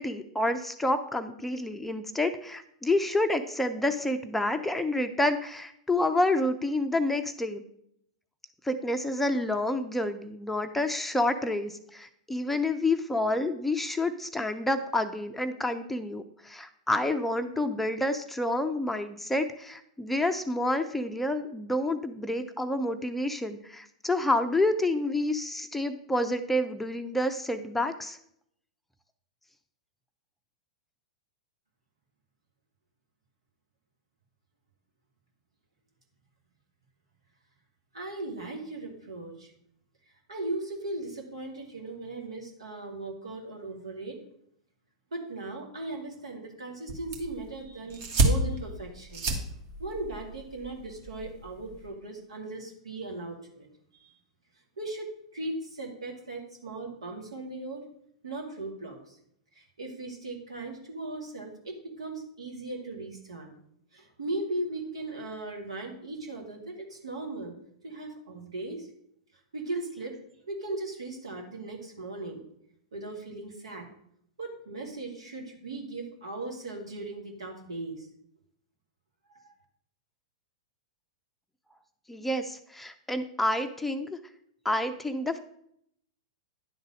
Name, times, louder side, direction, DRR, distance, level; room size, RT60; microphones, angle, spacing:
voice 1, 0.0-7.6 8.6-28.2 82.1-84.2 84.6-85.4, left 1 dB, 5° left, 7 dB, 0.5 m, -29 dB
voice 2, 37.9-39.5 40.3-44.2 45.1-49.2 49.8-53.7 53.9-54.1 54.8-55.1 55.3-57.8 58.2-59.2 59.5-63.5 63.9-67.6 67.8-68.9 69.5-70.2 70.5-72.4 72.9-73.9 74.4-78.1 79.3-79.4, right 2 dB, 75° right, 1 dB, 2.2 m, -38 dB
sound 1, 46.9-51.9, right 2 dB, 45° right, 1.8 m, -31 dB
10.0 x 4.0 x 6.3 m, 0.71 s
figure-of-eight pair, 100°, 3 cm